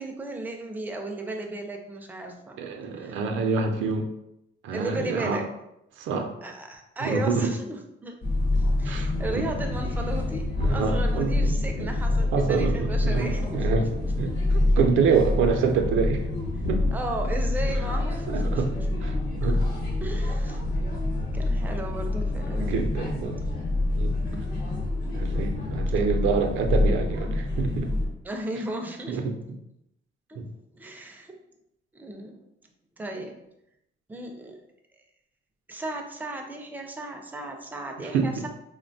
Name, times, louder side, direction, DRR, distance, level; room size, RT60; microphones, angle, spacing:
voice 1, 0.0-2.6 3.0-3.2 4.7-5.5 6.4-8.2 8.5-13.9 16.9-18.6 19.4-19.5 20.0-20.6 20.9-22.7 24.3-24.7 28.2-29.2 30.3-30.4 30.7-31.3 31.9-32.4 33.0-33.3 34.1-34.6 35.7-38.5, right 2 dB, 10° right, 3 dB, 0.3 m, -35 dB
voice 2, 2.6-4.1 4.6-5.4 6.0-6.3 7.0-7.5 8.9-9.5 10.6-11.9 12.3-13.9 14.2-16.2 16.6-16.8 18.3-18.7 19.0-19.1 19.4-19.6 22.6-23.4 23.9-24.2 25.1-27.9 29.1-29.3 30.4-30.5 38.0-38.4, right 5 dB, 80° right, 4 dB, 0.4 m, -26 dB
sound 1, 8.2-28.1, left 2 dB, 45° left, 0.9 m, -26 dB
2.9 x 2.1 x 2.6 m, 0.83 s
cardioid pair, 120°, 20 cm